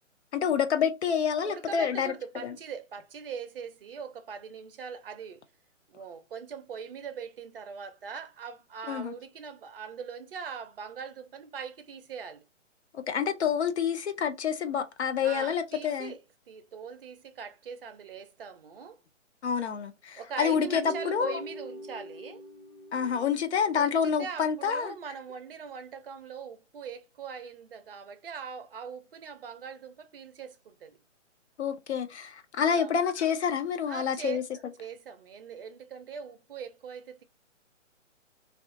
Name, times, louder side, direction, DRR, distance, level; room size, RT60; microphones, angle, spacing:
voice 1, 0.3-2.1 2.4-2.6 8.9-9.1 12.9-16.1 19.4-21.4 22.9-24.9 31.6-34.4, left 7 dB, 60° left, 0.6 m, -28 dB
voice 2, 1.4-5.4 5.9-12.4 15.2-16.2 16.5-19.0 20.2-22.4 23.8-31.0 32.6-32.9 33.9-37.2, right 6 dB, 45° right, 0.5 m, -41 dB
Guitar, 20.5-23.8, right 1 dB, 15° left, 1.1 m, -42 dB
2.4 x 2.3 x 2.6 m
hypercardioid pair, 150°, 38 cm